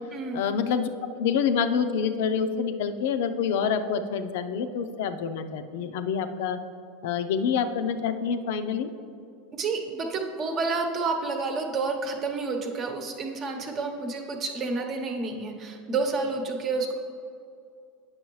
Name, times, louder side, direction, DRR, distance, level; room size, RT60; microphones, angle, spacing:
voice 1, 0.3-0.9 1.2-6.6 7.0-8.9, left 6 dB, 70° left, 9 dB, 0.5 m, -27 dB
voice 2, 9.5-16.9, right 3 dB, 40° right, 4 dB, 1.0 m, -29 dB
8.8 x 6.0 x 3.1 m, 2.4 s
hypercardioid pair, 95°, 0 cm